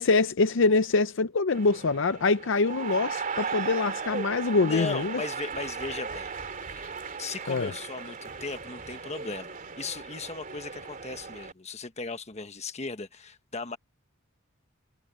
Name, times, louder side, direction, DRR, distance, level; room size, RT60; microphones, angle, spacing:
voice 1, 0.0-5.2 7.5-7.7, left 3 dB, 65° left, 0.6 m, -24 dB
sound 1, 1.5-11.5, right 5 dB, 40° right, 2.9 m, -37 dB
voice 2, 4.6-6.3 6.7-6.9 7.2-13.8, left 4 dB, 35° left, 1.2 m, -37 dB
head